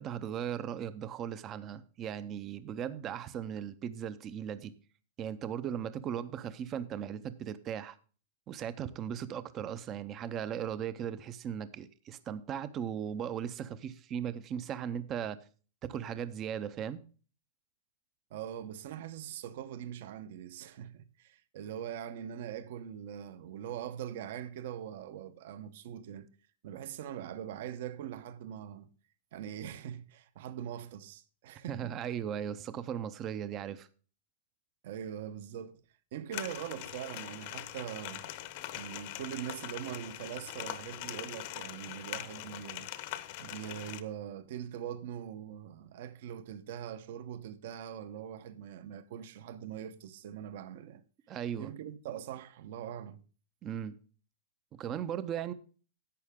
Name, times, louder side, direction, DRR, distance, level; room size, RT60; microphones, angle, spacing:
voice 1, 0.0-4.7 5.2-8.0 8.5-15.4 15.8-17.0 31.7-33.9 51.3-51.7 53.6-53.9 54.7-55.5, right 9 dB, 25° right, 0.5 m, -37 dB
voice 2, 18.3-26.3 26.6-28.9 29.3-32.0 34.8-35.8 36.1-38.2 38.7-42.9 43.4-51.0 51.6-53.2, right 10 dB, 55° right, 0.9 m, -42 dB
sound 1, 36.3-44.0, left 14 dB, 45° left, 0.8 m, -42 dB
11.0 x 8.3 x 3.6 m
supercardioid pair, 165°, 0 cm